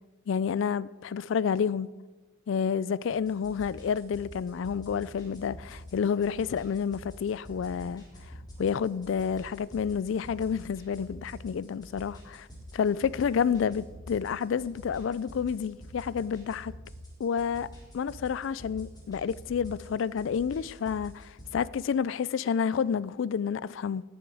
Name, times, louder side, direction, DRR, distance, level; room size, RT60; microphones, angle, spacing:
voice 1, 0.3-1.9 2.5-8.3 8.6-12.5 12.7-16.7 17.2-17.7 17.9-24.0, left 7 dB, 65° left, 0.3 m, -29 dB
sound 1, 3.1-21.5, equal, 20° left, 3.9 m, -47 dB
19.0 x 7.0 x 4.9 m
head